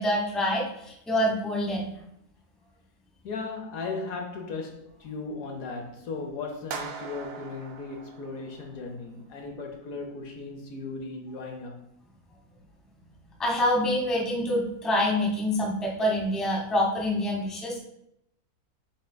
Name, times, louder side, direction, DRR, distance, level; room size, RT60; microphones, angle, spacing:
voice 1, 0.0-1.9 13.4-17.8, left 1 dB, ahead, 0.7 m, -26 dB
voice 2, 3.2-11.9, left 3 dB, 70° left, 1.0 m, -37 dB
sound 1, 6.7-8.9, right 5 dB, 85° right, 0.5 m, -40 dB
6.5 x 3.6 x 2.2 m
omnidirectional pair, 1.6 m